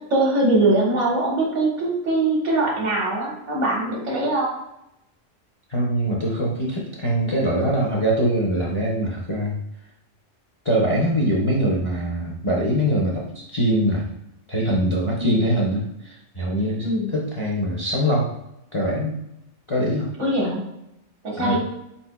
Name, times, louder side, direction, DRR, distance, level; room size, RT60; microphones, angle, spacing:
voice 1, 0.1-4.5 15.2-15.5 16.8-17.1 20.2-20.6 21.2-21.6, right 2 dB, 70° right, -3 dB, 1.6 m, -22 dB
voice 2, 5.7-9.6 10.6-14.1 14.5-18.3 18.7-19.2 19.7-20.1 21.4-21.6, equal, 35° left, -3 dB, 0.5 m, -23 dB
4.3 x 4.1 x 2.2 m, 0.85 s
omnidirectional pair, 1.3 m